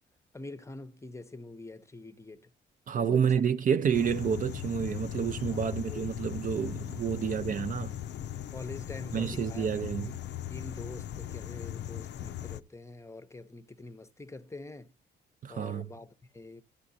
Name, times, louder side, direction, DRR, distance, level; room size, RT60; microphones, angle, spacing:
voice 1, 0.3-2.4 2.9-3.2 5.5-6.0 8.5-9.7 10.5-14.9 15.5-16.1 16.3-16.6, left 2 dB, 15° left, 0.7 m, -45 dB
voice 2, 2.9-7.9 9.1-10.2 15.4-15.9, right 7 dB, 45° right, 0.5 m, -29 dB
sound 1, 3.9-12.6, left 11 dB, 60° left, 0.5 m, -38 dB
13.0 x 8.4 x 2.6 m
cardioid pair, 90°, 20 cm